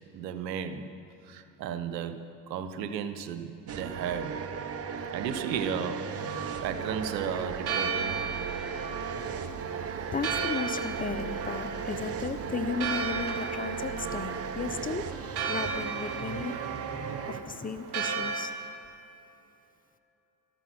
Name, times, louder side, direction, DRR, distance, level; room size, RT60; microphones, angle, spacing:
voice 1, 0.1-0.9 1.2-4.4 5.1-6.2 6.6-8.2, right 7 dB, 85° right, 10 dB, 1.0 m, -34 dB
sound 1, 3.7-17.4, right 6 dB, 30° right, 0.9 m, -36 dB
Church bell, 6.1-18.5, right 5 dB, 55° right, 2.3 m, -36 dB
voice 2, 10.1-16.5 17.3-18.5, left 5 dB, 20° left, 11 dB, 0.6 m, -35 dB
13.0 x 12.0 x 6.2 m, 2.9 s
hypercardioid pair, 90°, 49 cm